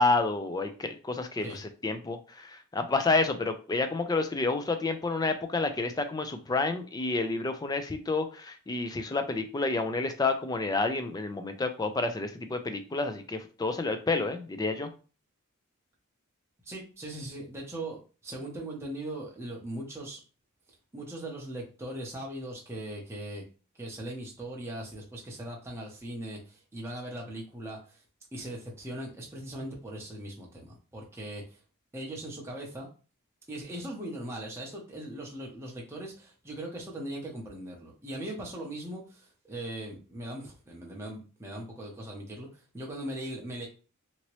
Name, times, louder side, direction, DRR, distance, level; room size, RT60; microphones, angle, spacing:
voice 1, 0.0-14.9, left 3 dB, 15° left, 8 dB, 0.3 m, -29 dB
voice 2, 16.6-20.2 20.9-23.5 23.7-28.0 28.3-31.6 31.9-32.9 33.5-43.7, right 1 dB, 10° right, -2 dB, 0.7 m, -39 dB
2.9 x 2.7 x 3.0 m, 0.36 s
head